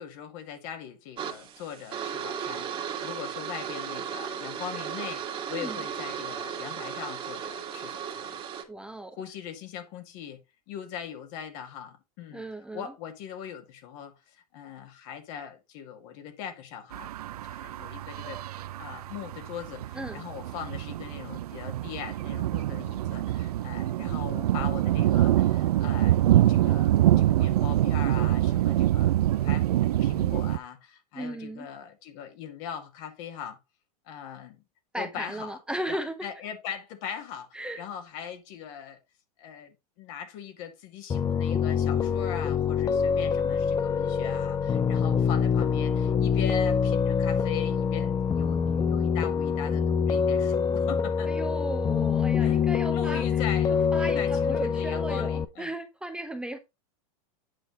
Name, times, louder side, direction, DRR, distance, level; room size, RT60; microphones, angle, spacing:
voice 1, 0.0-8.4 9.1-10.4 10.7-12.4 12.7-17.1 17.4-18.4 18.8-26.2 26.5-33.6 34.1-34.6 35.0-35.6 35.9-39.0 39.4-51.5 52.4-52.6 52.9-55.7, left 8 dB, 55° left, 2.0 m, -40 dB
sound 1, 1.2-8.6, right 8 dB, 30° right, 1.8 m, -35 dB
voice 2, 5.5-5.9 8.7-9.2 12.3-12.9 19.9-20.2 31.1-31.7 34.9-36.3 37.5-37.8 51.2-53.2 53.9-56.6, right 1 dB, 5° right, 0.9 m, -36 dB
sound 2, 16.9-30.6, right 13 dB, 90° right, 0.5 m, -25 dB
Piano, 41.1-55.4, left 6 dB, 20° left, 0.6 m, -25 dB
8.8 x 5.8 x 3.8 m
hypercardioid pair, 120°, 19 cm